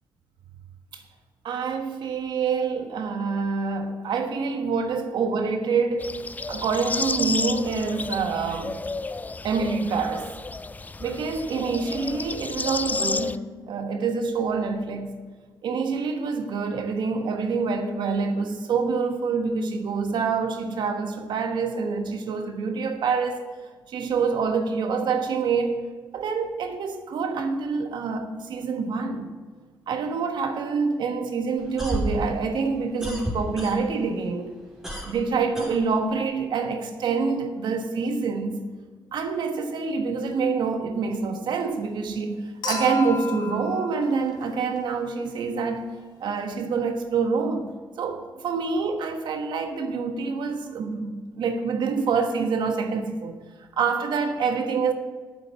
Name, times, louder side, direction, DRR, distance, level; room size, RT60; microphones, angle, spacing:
voice 1, 1.4-6.2 6.5-8.8 9.4-10.3 11.0-15.1 15.6-23.5 23.9-25.8 26.1-29.3 29.9-34.6 35.0-38.6 39.1-45.9 46.2-47.7 48.0-53.3 53.8-54.9, right 5 dB, 70° right, 1.3 m, -26 dB
sound 1, 6.0-13.4, left 3 dB, 20° left, 0.4 m, -31 dB
sound 2, 31.6-34.1 34.4-36.3, equal, 5° right, 2.9 m, -32 dB
Human group actions / Chink clink / Liquid, 42.6-45.0 46.5-46.6, left 3 dB, 65° left, 3.6 m, -34 dB
8.7 x 7.7 x 7.0 m
cardioid pair, 80°, 8 cm